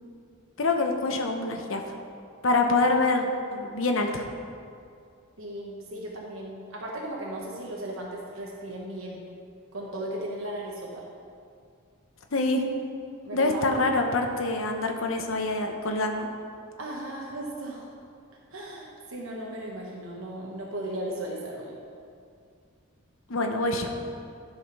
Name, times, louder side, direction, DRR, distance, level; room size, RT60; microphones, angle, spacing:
voice 1, 0.6-2.0 2.4-4.2 12.3-12.7 13.3-16.3 23.3-23.9, left 2 dB, 65° left, 3 dB, 0.9 m, -25 dB
voice 2, 5.4-9.2 9.7-11.1 13.2-13.7 16.8-17.9 18.5-21.8, right 1 dB, 70° right, -2 dB, 1.1 m, -36 dB
11.5 x 5.0 x 5.4 m, 2.3 s
head